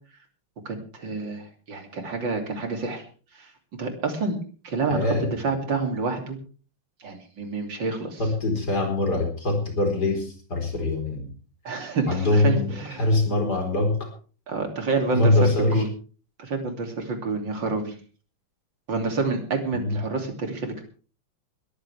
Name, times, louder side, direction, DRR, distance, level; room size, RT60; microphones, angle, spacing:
voice 1, 0.7-3.0 3.3-3.5 3.8-4.4 4.6-5.0 5.3-6.4 7.0-8.2 11.7-13.0 14.5-15.9 16.4-17.9 18.9-20.8, right 3 dB, 65° right, 4 dB, 3.6 m, -28 dB
voice 2, 4.9-5.3 8.2-11.3 12.1-14.1 15.1-15.8 19.7-20.0, left 2 dB, 50° left, 3 dB, 5.0 m, -23 dB
21.0 x 14.0 x 3.5 m, 0.38 s
omnidirectional pair, 2.2 m